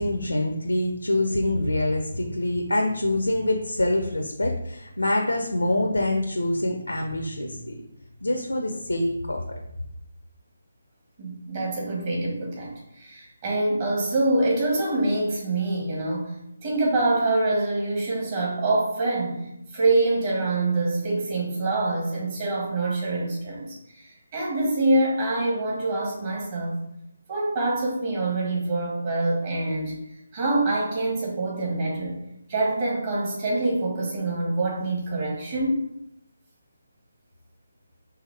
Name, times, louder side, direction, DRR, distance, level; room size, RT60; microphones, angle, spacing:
voice 1, 0.0-7.8 8.2-9.4, left 1 dB, 80° left, 2 dB, 0.5 m, -25 dB
voice 2, 11.2-19.5 19.7-26.8 27.3-30.0 30.3-32.2 32.5-35.8, right 2 dB, 35° right, -4 dB, 1.6 m, -25 dB
4.8 x 3.2 x 3.3 m, 0.81 s
figure-of-eight pair, 150°, 0 cm